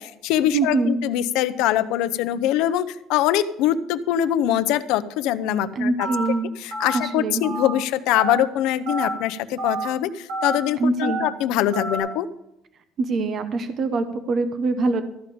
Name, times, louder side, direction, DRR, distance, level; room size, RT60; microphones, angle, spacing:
voice 1, 0.0-6.1 6.6-12.3, left 11 dB, 75° left, 13 dB, 0.7 m, -23 dB
voice 2, 0.5-1.0 5.7-6.5 6.9-7.4 10.8-11.2 13.0-15.0, right 3 dB, 35° right, 10 dB, 0.8 m, -23 dB
Telephone, 6.0-6.3 6.7-7.0 7.4-7.7 8.1-8.4 8.9-9.1 9.6-9.8 10.3-10.6 11.0-11.3 11.7-12.0, right 2 dB, 65° right, 4.8 m, -28 dB
13.5 x 5.1 x 8.6 m, 0.86 s
cardioid pair, 170°, 0 cm